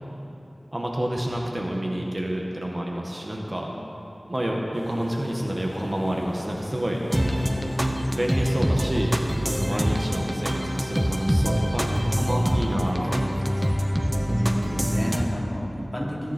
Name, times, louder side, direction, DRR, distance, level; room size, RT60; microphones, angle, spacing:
voice 1, 0.7-3.7 4.3-7.0 8.1-9.1 9.5-13.6, right 1 dB, 40° right, -1 dB, 1.7 m, -28 dB
sound 1, 4.7-11.7, left 1 dB, 60° left, 1.1 m, -41 dB
sound 2, 7.1-15.2, equal, 20° right, 1.1 m, -25 dB
voice 2, 14.4-16.3, equal, 5° left, -6 dB, 4.0 m, -31 dB
21.5 x 9.6 x 4.6 m, 2.9 s
wide cardioid pair, 45°, 0 cm